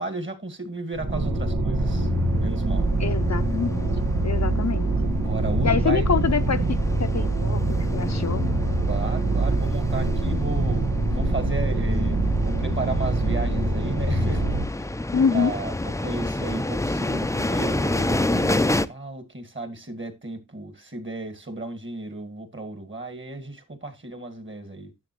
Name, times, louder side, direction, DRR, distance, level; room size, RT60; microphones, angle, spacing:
voice 1, 0.0-2.1 2.4-2.9 5.2-6.1 8.9-12.2 12.4-14.4 14.7-14.9 15.3-24.9, right 2 dB, 35° right, 2.0 m, -34 dB
sound 1, 1.0-14.6, right 2 dB, 85° right, 1.6 m, -24 dB
sound 2, 1.8-18.9, left 1 dB, 10° left, 0.5 m, -30 dB
voice 2, 3.0-3.8 4.2-4.9 5.6-6.6 7.0-7.6 7.9-8.4 15.1-15.5, left 6 dB, 55° left, 0.7 m, -25 dB
10.5 x 7.2 x 3.0 m
wide cardioid pair, 55°, 32 cm